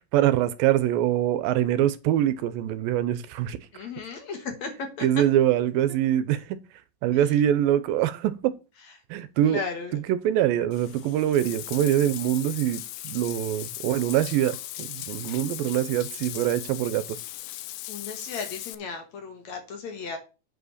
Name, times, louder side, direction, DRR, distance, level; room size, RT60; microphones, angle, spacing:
voice 1, 0.0-3.6 5.0-6.4 7.0-8.5 9.1-9.6 9.9-17.2, right 11 dB, 80° right, 2.3 m, -24 dB
voice 2, 3.7-4.7 5.0-5.1 9.5-10.0 17.9-20.2, left 5 dB, 60° left, 2.4 m, -35 dB
Bathtub (filling or washing), 10.7-18.7, left 15 dB, 80° left, 2.4 m, -38 dB
8.3 x 4.9 x 6.5 m
omnidirectional pair, 4.2 m